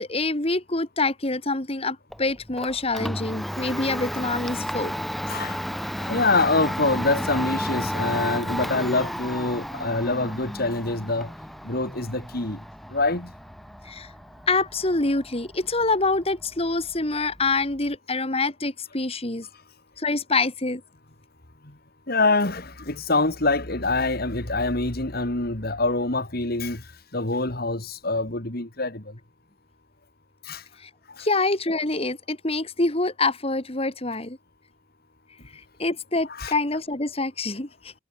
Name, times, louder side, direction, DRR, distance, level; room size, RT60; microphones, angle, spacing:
voice 1, 0.0-4.9 13.8-14.1 14.5-19.5 20.0-20.8 30.8-30.9 31.2-34.4 35.5-37.9, left 3 dB, 30° left, 2.1 m, -26 dB
Domestic sounds home sounds, 2.1-18.0, equal, ahead, 4.9 m, -33 dB
voice 2, 5.3-5.6 6.0-11.3 11.6-12.6 12.9-13.3 22.1-26.8 27.1-29.1 30.5-30.6 31.2-31.3 36.4-36.5, left 2 dB, 50° left, 2.5 m, -25 dB
head